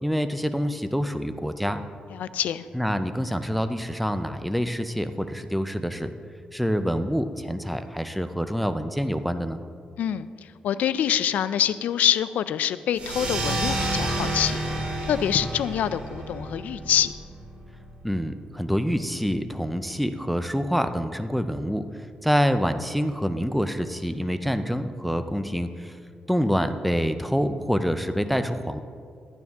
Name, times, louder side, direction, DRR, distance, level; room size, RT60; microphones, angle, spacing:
voice 1, 0.0-1.8 2.7-6.1 6.5-9.6 18.0-21.8 22.2-26.0 26.3-28.8, equal, ahead, 8 dB, 0.4 m, -26 dB
voice 2, 2.1-2.6 10.0-14.6 15.0-17.1, left 10 dB, 85° left, 14 dB, 0.3 m, -25 dB
sound 1, 12.9-18.0, right 1 dB, 50° right, 2.4 m, -30 dB
12.0 x 9.4 x 3.6 m, 2.2 s
cardioid pair, 125°, 3 cm